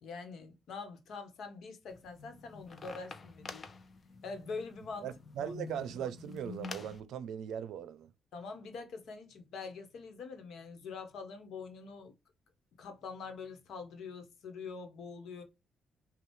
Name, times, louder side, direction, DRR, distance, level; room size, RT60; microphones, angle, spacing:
voice 1, 0.0-3.6 4.2-5.1 5.4-5.5 8.3-12.1 12.8-15.4, left 4 dB, 70° left, 1.2 m, -44 dB
sound 1, 1.9-7.0, left 4 dB, 40° left, 0.7 m, -47 dB
voice 2, 5.0-8.1, right 9 dB, 80° right, 0.5 m, -39 dB
5.4 x 2.3 x 3.1 m
cardioid pair, 90°, 0 cm